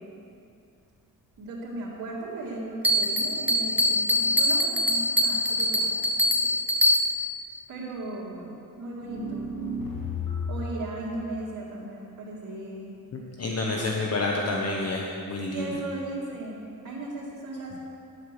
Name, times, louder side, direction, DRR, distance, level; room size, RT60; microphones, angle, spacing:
voice 1, 1.4-6.0 6.2-6.3 7.7-9.5 10.5-12.9 13.4-13.7 15.5-17.8, right 2 dB, 70° right, -9 dB, 2.2 m, -37 dB
Bell, 2.8-7.4, equal, 5° right, 0.6 m, -24 dB
sound 1, 9.0-10.8, left 2 dB, 80° left, 1.6 m, -32 dB
voice 2, 13.4-15.7, left 2 dB, 45° left, -1 dB, 0.9 m, -28 dB
9.7 x 8.1 x 6.7 m, 2.6 s
wide cardioid pair, 145°, 34 cm